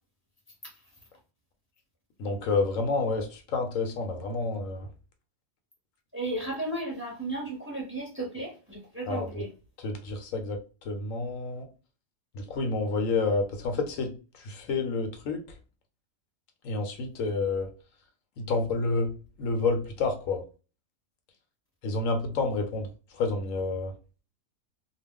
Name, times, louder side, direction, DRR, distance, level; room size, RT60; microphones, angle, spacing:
voice 1, 2.2-4.9 9.0-9.3 9.8-10.6 10.9-11.7 12.3-15.4 16.6-17.7 18.4-19.1 19.4-20.4 21.8-22.9 23.1-23.9, left 3 dB, 80° left, 5 dB, 1.0 m, -29 dB
voice 2, 6.1-9.5, right 1 dB, 10° right, -1 dB, 0.7 m, -34 dB
2.4 x 2.1 x 3.5 m, 0.34 s
omnidirectional pair, 1.4 m